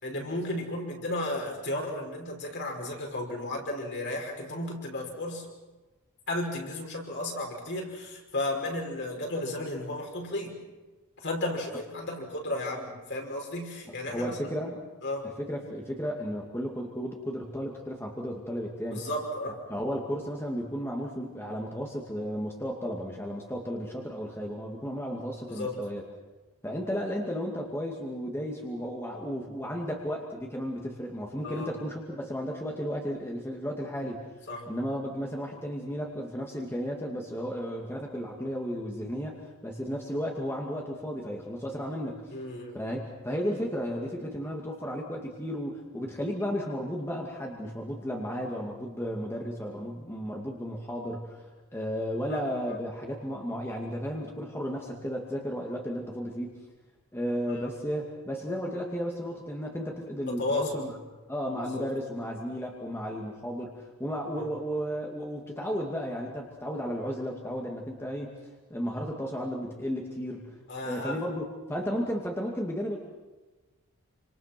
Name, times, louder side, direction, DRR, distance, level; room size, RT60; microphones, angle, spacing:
voice 1, 0.0-5.5 6.3-10.6 11.2-14.6 15.0-15.3 18.9-19.6 25.5-25.8 31.4-31.7 34.5-34.6 42.3-42.8 52.3-52.4 52.7-52.8 60.3-60.8 61.5-61.9 64.4-64.5 70.7-71.2, left 1 dB, 50° left, 0 dB, 5.8 m, -34 dB
voice 2, 14.1-14.8 15.4-19.1 19.5-26.0 26.6-34.3 34.7-42.2 42.7-51.4 51.7-56.5 57.1-60.9 61.3-68.4 68.7-70.6 70.8-73.0, equal, 10° left, -1 dB, 2.4 m, -34 dB
28.5 x 26.5 x 6.1 m, 1.2 s
head